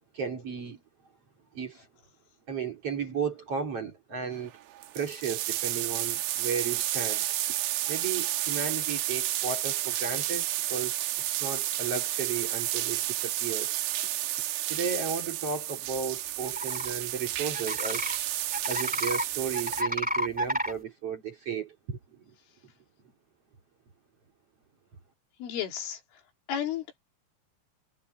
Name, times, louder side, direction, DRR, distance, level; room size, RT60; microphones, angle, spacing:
voice 1, 0.1-0.8 1.5-1.9 2.5-4.5 4.9-7.2 7.9-11.1 11.4-13.8 14.7-18.1 18.7-22.2, right 6 dB, 35° right, 3.1 m, -34 dB
sound 1, 4.4-4.5 4.7-19.8, right 14 dB, 75° right, 2.3 m, -31 dB
sound 2, 16.4-16.9 17.5-18.2 18.5-19.2 19.5-20.7, equal, 5° right, 0.9 m, -30 dB
voice 2, 25.4-26.0 26.5-27.1, left 9 dB, 85° left, 5.8 m, -33 dB
omnidirectional pair, 5.5 m